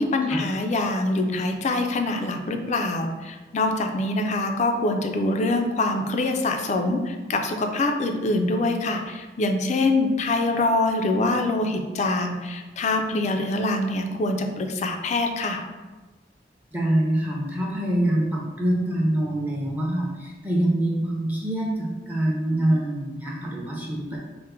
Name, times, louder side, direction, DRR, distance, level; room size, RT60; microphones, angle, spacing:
voice 1, 0.0-15.6, left 2 dB, 40° left, 5 dB, 0.3 m, -24 dB
voice 2, 16.7-24.2, right 1 dB, 10° right, -3 dB, 0.6 m, -25 dB
4.3 x 2.1 x 3.5 m, 1.3 s
head